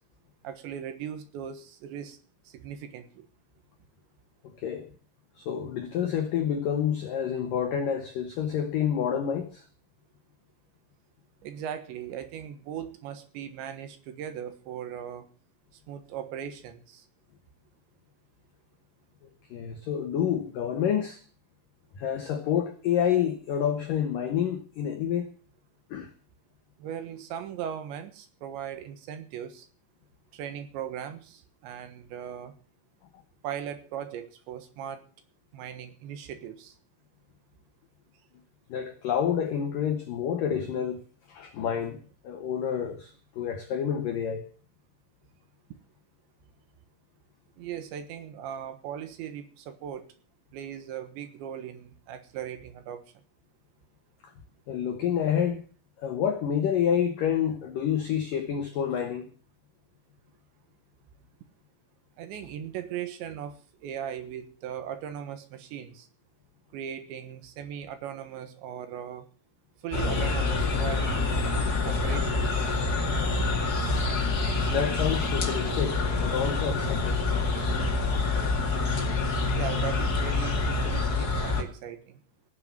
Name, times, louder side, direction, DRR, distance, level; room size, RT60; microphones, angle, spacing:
voice 1, 0.4-2.2 2.5-3.3 11.4-15.3 15.9-17.0 26.8-29.7 30.3-32.6 33.4-35.0 35.5-36.7 47.6-50.1 50.5-53.0 62.2-63.6 63.8-66.1 66.7-69.3 69.8-71.3 71.8-72.7 79.5-82.2, right 9 dB, 70° right, 3.3 m, -38 dB
voice 2, 5.4-9.7 19.5-21.2 22.0-25.3 25.9-26.1 38.7-41.0 41.3-42.0 42.2-44.5 54.7-55.6 56.0-59.3 74.7-77.2 79.2-79.6, left 8 dB, 90° left, 1.9 m, -28 dB
sound 1, 69.9-81.6, left 3 dB, 70° left, 0.9 m, -26 dB
18.0 x 7.7 x 7.3 m
omnidirectional pair, 5.9 m